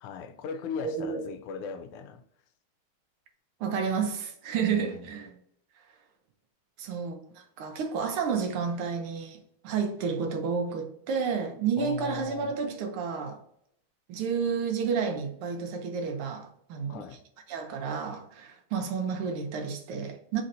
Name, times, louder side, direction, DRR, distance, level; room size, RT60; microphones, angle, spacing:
voice 1, 0.0-2.2 4.7-5.2 11.8-12.5 16.9-17.2, left 6 dB, 90° left, 1.5 m, -38 dB
voice 2, 0.8-1.2 3.6-5.3 6.8-13.4 14.1-17.0 17.5-20.4, right 6 dB, 85° right, 1.6 m, -31 dB
4.3 x 2.6 x 4.1 m
omnidirectional pair, 2.3 m